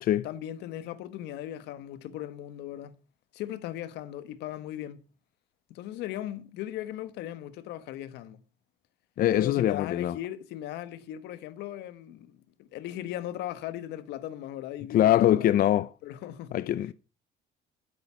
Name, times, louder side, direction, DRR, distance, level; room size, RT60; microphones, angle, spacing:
voice 1, 0.2-2.9 3.3-5.0 5.7-8.4 9.4-15.6 16.0-16.5, left 12 dB, 85° left, 1.4 m, -38 dB
voice 2, 9.2-10.2 14.9-15.9 16.5-16.9, left 12 dB, 60° left, 0.6 m, -23 dB
12.5 x 9.6 x 5.7 m
cardioid pair, 110°, 17 cm